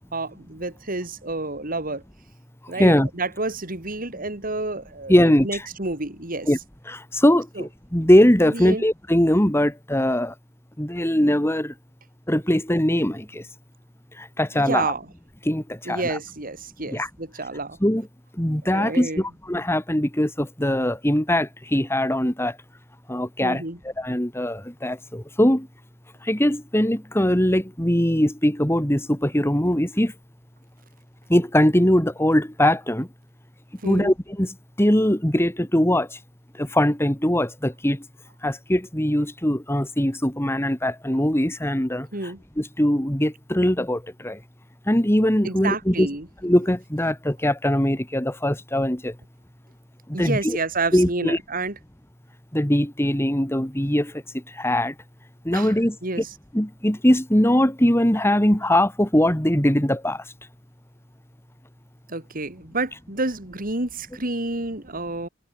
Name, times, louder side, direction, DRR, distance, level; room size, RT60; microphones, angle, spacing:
voice 1, 0.1-2.0 2.7-6.5 7.6-7.7 8.5-8.8 14.5-15.1 15.9-17.8 18.6-19.2 23.4-23.8 33.8-34.1 42.1-42.4 45.4-46.3 50.1-51.8 55.5-55.8 56.0-56.3 62.1-65.3, right 2 dB, 45° right, 4.0 m, -29 dB
voice 2, 2.7-3.1 5.1-5.5 6.5-6.6 6.9-10.3 10.8-11.7 12.3-13.4 14.2-14.9 15.5-16.2 16.9-17.1 17.8-18.1 18.4-22.6 23.1-23.6 24.0-25.7 26.2-30.1 31.3-33.1 33.8-36.2 36.6-38.0 38.4-42.1 42.6-44.4 44.9-46.1 46.4-49.1 50.1-50.6 50.9-51.4 52.5-54.1 54.5-54.9 55.4-56.0 56.5-60.2, left 1 dB, 15° left, 2.6 m, -21 dB
head